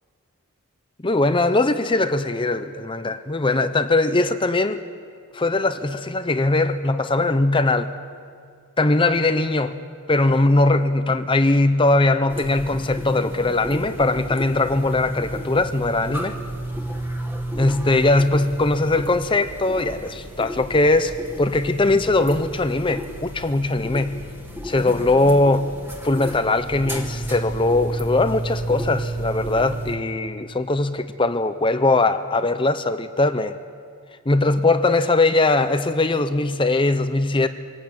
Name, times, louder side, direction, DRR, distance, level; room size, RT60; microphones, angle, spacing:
voice 1, 1.0-4.8 5.3-7.9 8.8-16.4 17.6-24.2 24.6-25.7 26.0-33.6 34.3-37.5, left 2 dB, 20° left, 11 dB, 0.7 m, -20 dB
sound 1, 12.3-30.0, right 1 dB, 10° right, 2.2 m, -32 dB
24.5 x 18.0 x 8.8 m, 2.3 s
head